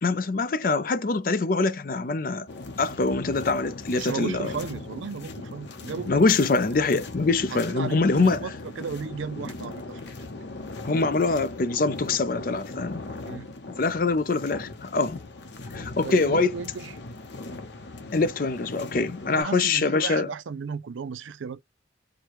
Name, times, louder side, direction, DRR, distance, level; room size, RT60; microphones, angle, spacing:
voice 1, 0.0-2.5 2.8-4.5 6.1-8.4 10.9-13.0 13.8-15.2 15.7-16.5 18.1-20.3, left 3 dB, 45° left, 0.5 m, -24 dB
sound 1, 2.5-19.4, left 2 dB, 65° left, 0.9 m, -39 dB
voice 2, 3.9-6.4 7.5-10.0 13.2-13.5 16.0-16.9 19.3-21.6, right 5 dB, 85° right, 0.4 m, -35 dB
4.6 x 2.2 x 3.0 m
head